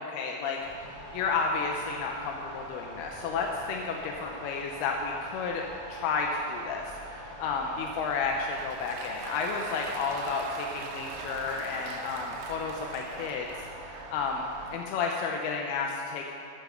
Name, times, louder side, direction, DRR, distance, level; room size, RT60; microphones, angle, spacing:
voice 1, 0.0-13.5 13.8-16.3, left 4 dB, 90° left, 1 dB, 2.8 m, -32 dB
sound 1, 0.6-14.7, right 2 dB, 35° right, 1.6 m, -44 dB
Applause, 8.1-14.2, right 7 dB, 75° right, 1.9 m, -43 dB
12.5 x 8.0 x 6.6 m, 2.6 s
omnidirectional pair, 4.4 m